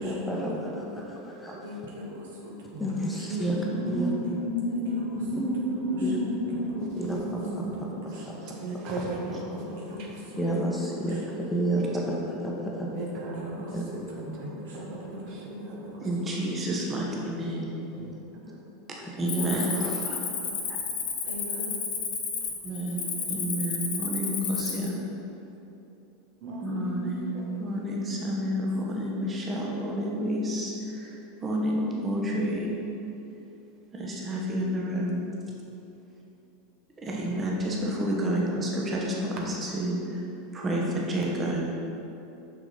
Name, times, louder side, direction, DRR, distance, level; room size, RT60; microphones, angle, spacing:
voice 1, 0.0-1.8 2.8-4.1 6.0-6.2 7.0-7.2 7.5-7.6 8.3-8.4 10.4-12.9 13.7-13.8 19.0-20.2, right 1 dB, 5° left, -3 dB, 1.1 m, -31 dB
voice 2, 0.6-1.1 1.6-2.5 3.2-3.9 4.7-5.5 5.9-6.3 7.6-8.6 9.6-10.4 11.0-12.2 13.1-14.0 14.4-15.0 15.3-16.0 17.2-17.3 20.2-20.7 21.2-21.8, left 1 dB, 65° right, -4 dB, 1.4 m, -43 dB
voice 3, 3.3-7.9 8.4-10.1 11.0-11.1 12.9-16.2 17.9-18.1 18.5-18.6 26.4-27.6 29.5-29.8, equal, 45° right, -2 dB, 1.2 m, -33 dB
voice 4, 16.0-17.6 19.2-19.8 22.6-23.0 23.3-25.0 26.6-32.7 33.9-35.2 37.0-40.2 40.5-41.7, equal, 25° right, -3 dB, 1.2 m, -30 dB
Cricket, 19.3-24.9, left 5 dB, 50° left, 1.0 m, -32 dB
6.3 x 6.0 x 4.0 m, 2.9 s
figure-of-eight pair, 85°, 0 cm